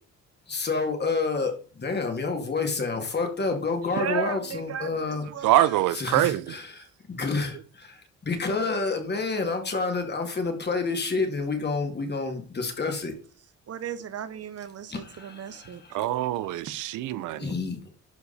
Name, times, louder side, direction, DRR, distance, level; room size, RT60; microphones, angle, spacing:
voice 1, 0.5-5.5 5.9-13.1 14.9-16.1 17.4-17.9, left 4 dB, 35° left, 2.4 m, -29 dB
voice 2, 3.9-5.8 13.7-16.0, right 8 dB, 55° right, 1.0 m, -35 dB
voice 3, 5.4-6.5 15.9-17.5, right 14 dB, 85° right, 0.6 m, -24 dB
11.5 x 4.7 x 4.2 m
cardioid pair, 90°, 30 cm